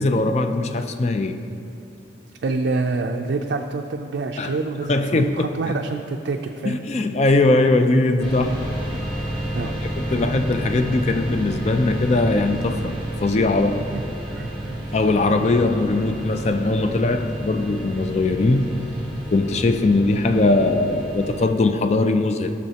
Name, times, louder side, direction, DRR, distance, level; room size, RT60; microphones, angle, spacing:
voice 1, 0.0-1.4 4.4-5.7 6.6-8.7 9.5-9.6 10.0-12.9 13.2-13.9 14.9-18.7 19.3-22.5, left 2 dB, 35° left, 7 dB, 0.4 m, -20 dB
voice 2, 2.4-6.8 9.5-9.7 13.9-14.0 14.3-14.8, right 3 dB, 60° right, 3 dB, 0.4 m, -27 dB
sound 1, 8.2-21.5, right 1 dB, 5° left, 1.7 m, -30 dB
15.0 x 6.3 x 2.8 m, 2.7 s
head